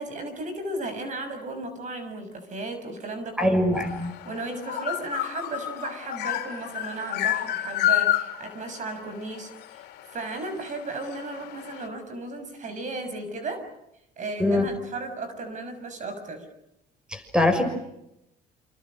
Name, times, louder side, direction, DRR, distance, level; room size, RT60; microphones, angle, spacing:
voice 1, 0.0-3.6 4.2-9.9 10.1-13.7 14.2-16.4, right 2 dB, 45° right, 9 dB, 6.7 m, -35 dB
voice 2, 3.4-4.1 14.4-14.7 17.1-17.6, left 1 dB, 5° right, 7 dB, 6.3 m, -22 dB
sound 1, 3.8-11.9, left 14 dB, 80° left, 3.2 m, -30 dB
28.5 x 27.0 x 6.5 m, 0.85 s
cardioid pair, 110°, 17 cm